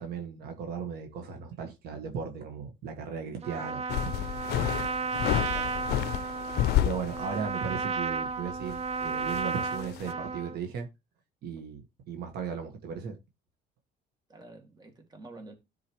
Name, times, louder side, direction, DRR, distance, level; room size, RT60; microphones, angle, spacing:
voice 1, 0.0-3.8 6.8-10.9 11.4-11.8 12.1-13.2, right 6 dB, 70° right, 1.6 m, -36 dB
Trumpet, 3.4-10.6, right 4 dB, 40° right, 0.7 m, -33 dB
sound 1, 3.9-7.5 7.8-7.9 8.5-10.1, left 13 dB, 75° left, 0.5 m, -30 dB
voice 2, 5.5-6.2 14.3-15.5, right 2 dB, 25° right, 2.3 m, -49 dB
13.0 x 4.7 x 3.1 m
cardioid pair, 110°, 17 cm